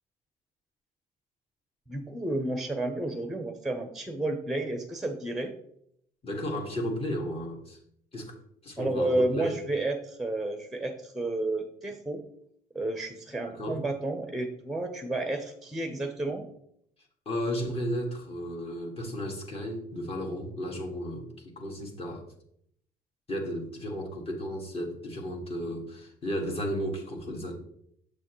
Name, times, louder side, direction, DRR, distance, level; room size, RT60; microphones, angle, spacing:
voice 1, 1.9-5.5 8.8-12.2 12.7-16.5, right 2 dB, ahead, 5 dB, 0.7 m, -31 dB
voice 2, 6.2-7.8 8.1-8.3 8.6-9.6 13.4-13.8 17.2-22.2 23.3-27.5, equal, 35° left, 1 dB, 1.7 m, -34 dB
6.6 x 6.2 x 3.0 m, 0.71 s
cardioid pair, 110°, 17 cm